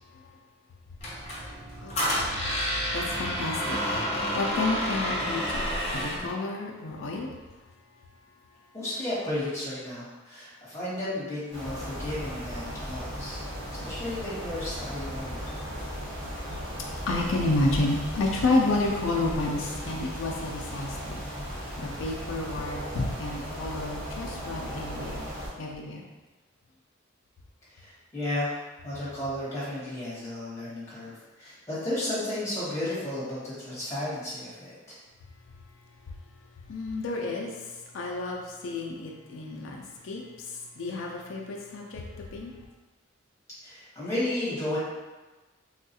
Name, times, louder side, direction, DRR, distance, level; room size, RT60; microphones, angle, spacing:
Squeak, 1.0-6.3, equal, 35° left, 0.6 m, -29 dB
voice 1, 2.9-7.3 15.6-16.7 17.1-25.3 25.6-26.1 36.7-42.5, left 2 dB, 90° left, -1 dB, 0.4 m, -31 dB
voice 2, 8.7-13.4 13.8-15.5 27.7-28.6 28.8-35.0 43.6-44.8, left 1 dB, 15° left, -9 dB, 1.1 m, -33 dB
sound 1, 11.5-25.5, equal, 80° right, 1.3 m, -36 dB
3.4 x 2.3 x 2.7 m, 1.2 s
head